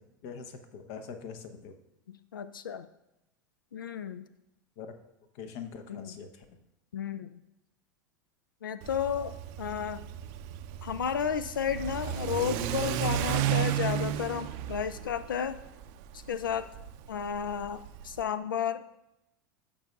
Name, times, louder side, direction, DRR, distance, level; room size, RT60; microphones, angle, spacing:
voice 1, 0.2-1.8 4.8-4.9 5.3-6.4, left 6 dB, 60° left, 7 dB, 0.9 m, -43 dB
voice 2, 2.1-2.9 3.7-4.3 5.9-6.1 6.9-7.4 8.6-10.0 10.8-15.6 16.1-16.8 17.1-18.8, left 8 dB, 85° left, 14 dB, 0.4 m, -33 dB
Car / Accelerating revving vroom, 8.8-18.2, right 10 dB, 55° right, 0.5 m, -33 dB
16.0 x 5.4 x 2.4 m, 0.87 s
hypercardioid pair, 85°, 11 cm